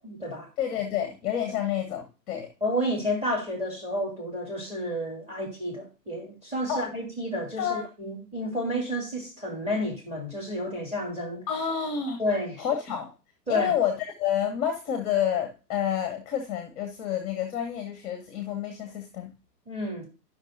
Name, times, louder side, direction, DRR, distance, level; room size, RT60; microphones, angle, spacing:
voice 1, 0.0-0.5 2.6-11.4 12.2-12.6 13.5-13.7 19.7-20.1, equal, 10° right, 2.9 m, -30 dB
voice 2, 0.6-2.5 6.7-6.9 7.6-7.9 11.5-12.2 12.6-13.1 13.5-19.3, left 9 dB, 20° left, 0.8 m, -29 dB
11.5 x 5.8 x 2.7 m
figure-of-eight pair, 125°, 50 cm